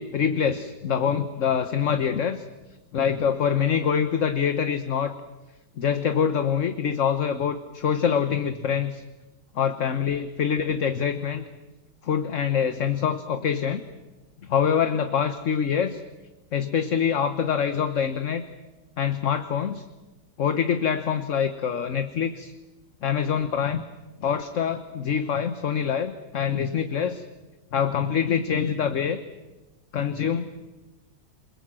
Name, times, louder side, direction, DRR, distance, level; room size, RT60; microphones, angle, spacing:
voice 1, 0.0-2.4 2.9-5.1 5.8-9.0 9.5-11.5 12.0-13.8 14.4-16.0 16.5-18.4 19.0-19.8 20.4-22.5 23.0-23.8 24.2-27.2 27.7-29.2 29.9-30.6, left 7 dB, 50° left, 9 dB, 1.3 m, -25 dB
28.0 x 21.5 x 7.7 m, 1.1 s
omnidirectional pair, 1.8 m